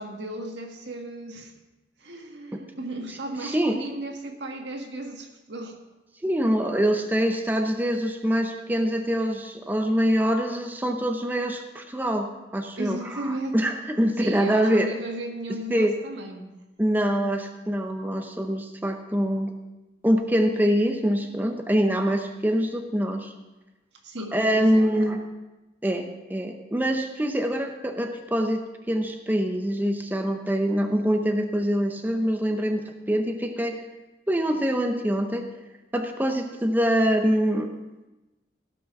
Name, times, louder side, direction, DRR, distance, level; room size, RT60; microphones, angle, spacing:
voice 1, 0.0-1.5 2.0-5.8 12.8-13.6 14.2-16.5 24.0-25.1, right 1 dB, 75° right, 3 dB, 1.7 m, -35 dB
voice 2, 3.4-3.8 6.2-14.9 15.7-15.9 16.8-19.5 20.0-23.3 24.3-25.2 25.8-28.6 28.9-33.8 34.3-35.4 35.9-37.7, equal, 10° right, 4 dB, 0.7 m, -24 dB
16.0 x 6.1 x 5.9 m, 1.1 s
head